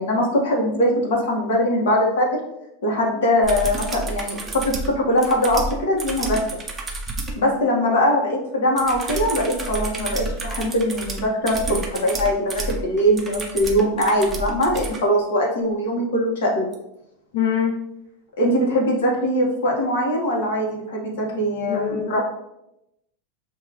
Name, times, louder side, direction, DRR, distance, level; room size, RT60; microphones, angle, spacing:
voice 1, 0.0-2.4 2.8-6.4 7.4-16.7 18.4-22.2, equal, 85° left, -1 dB, 1.4 m, -21 dB
sound 1, 3.4-7.4 8.8-15.0 16.7-16.8, right 2 dB, 10° right, 0.5 m, -30 dB
voice 2, 17.3-17.7 21.7-22.2, left 8 dB, 65° left, 3 dB, 0.4 m, -23 dB
6.2 x 2.8 x 3.0 m, 0.85 s
supercardioid pair, 165°, 0 cm